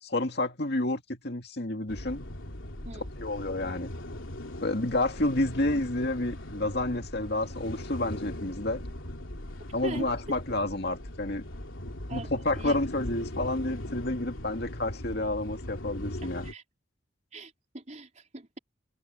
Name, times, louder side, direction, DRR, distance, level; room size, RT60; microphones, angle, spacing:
voice 1, 0.0-2.2 3.2-3.9 4.6-8.8 9.7-11.4 12.1-16.5, left 2 dB, 55° left, 2.3 m, -30 dB
sound 1, 1.9-16.5, left 1 dB, 85° left, 3.1 m, -39 dB
voice 2, 12.1-12.8 16.4-16.6 17.3-18.6, right 1 dB, 40° right, 4.2 m, -41 dB
head